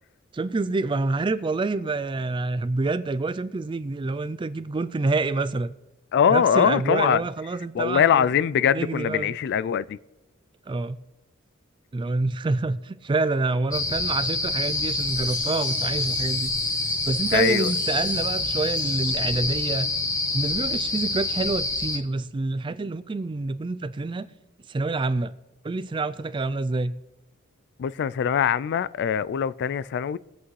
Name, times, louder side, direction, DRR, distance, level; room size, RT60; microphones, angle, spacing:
voice 1, 0.3-5.7 6.3-8.2 8.7-9.4 10.7-11.0 11.9-16.5 17.0-19.9 20.3-24.3 24.7-25.3 25.6-26.9, right 3 dB, 25° right, 0.3 m, -27 dB
voice 2, 6.1-7.2 7.7-10.0 17.3-17.7 27.8-30.2, left 8 dB, 55° left, 0.3 m, -22 dB
sound 1, 13.7-22.0, left 2 dB, 15° left, 1.0 m, -27 dB
sound 2, 14.5-19.9, left 3 dB, 85° left, 2.7 m, -43 dB
22.0 x 8.2 x 3.2 m
head